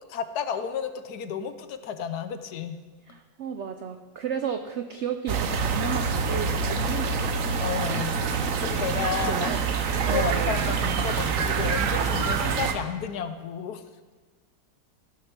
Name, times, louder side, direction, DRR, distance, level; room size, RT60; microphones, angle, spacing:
voice 1, 0.1-2.8 7.6-8.2 8.6-9.5 9.9-13.8, left 8 dB, 70° left, 10 dB, 1.2 m, -32 dB
voice 2, 3.1-7.4 9.2-9.6 10.1-10.6, right 7 dB, 75° right, 8 dB, 0.6 m, -33 dB
sound 1, 5.3-12.7, right 5 dB, 55° right, 1.1 m, -26 dB
16.0 x 6.5 x 6.0 m, 1.4 s
omnidirectional pair, 1.9 m